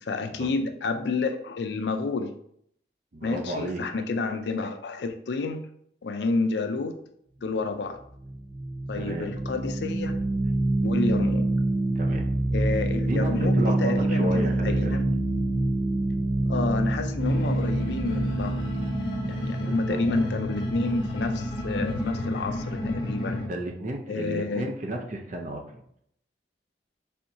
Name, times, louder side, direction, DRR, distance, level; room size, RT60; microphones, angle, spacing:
voice 1, 0.0-2.3 3.2-5.7 6.0-7.0 7.4-8.0 8.9-10.1 10.8-11.5 12.5-15.0 16.5-18.6 19.3-23.4 24.1-24.6, left 3 dB, 70° left, 7 dB, 0.4 m, -30 dB
voice 2, 3.1-3.8 9.0-9.3 12.0-12.3 13.1-15.0 19.2-20.3 23.4-25.8, right 1 dB, 45° right, 3 dB, 0.6 m, -33 dB
sound 1, 8.0-21.3, right 2 dB, 70° right, 1.6 m, -26 dB
sound 2, 17.2-23.5, left 1 dB, 25° left, 1.0 m, -31 dB
4.4 x 3.5 x 2.7 m, 0.70 s
head